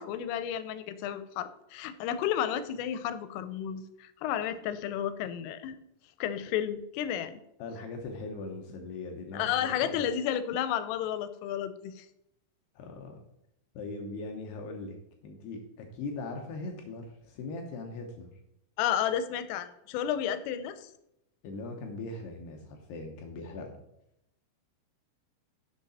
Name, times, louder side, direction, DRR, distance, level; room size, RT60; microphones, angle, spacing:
voice 1, 0.0-5.8 6.2-7.4 9.3-12.1 18.8-20.9, left 10 dB, 90° left, 12 dB, 3.3 m, -32 dB
voice 2, 7.6-10.1 12.8-13.2 13.7-15.0 15.2-18.3 21.4-23.7, left 3 dB, 70° left, 3 dB, 2.7 m, -40 dB
10.5 x 7.0 x 4.2 m, 0.81 s
omnidirectional pair, 5.7 m